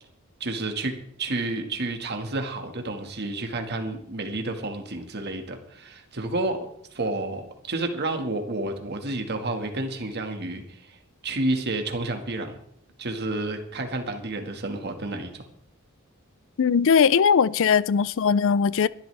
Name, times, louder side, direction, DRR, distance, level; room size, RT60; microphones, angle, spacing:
voice 1, 0.4-0.9 1.2-6.6 6.9-10.9 11.2-12.6 13.0-15.4, right 2 dB, 50° right, 1.8 m, -30 dB
voice 2, 16.6-18.9, left 6 dB, 60° left, 0.4 m, -20 dB
22.0 x 12.0 x 3.4 m
head